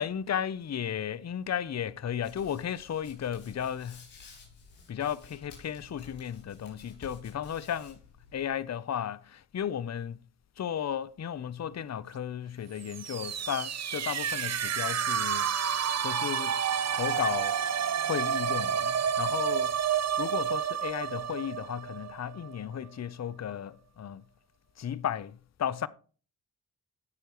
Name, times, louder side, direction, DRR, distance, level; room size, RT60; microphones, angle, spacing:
voice 1, 0.0-4.0 4.9-8.0 8.3-10.2 10.6-15.4 16.0-16.6 16.9-17.6 18.0-19.7 20.2-24.2 24.8-25.9, left 9 dB, 40° left, 0.7 m, -34 dB
Hands, 2.2-8.5, left 4 dB, 80° left, 6.3 m, -53 dB
sound 1, 12.8-22.5, right 8 dB, 40° right, 0.7 m, -30 dB
18.0 x 6.7 x 3.0 m
supercardioid pair, 50°, 39 cm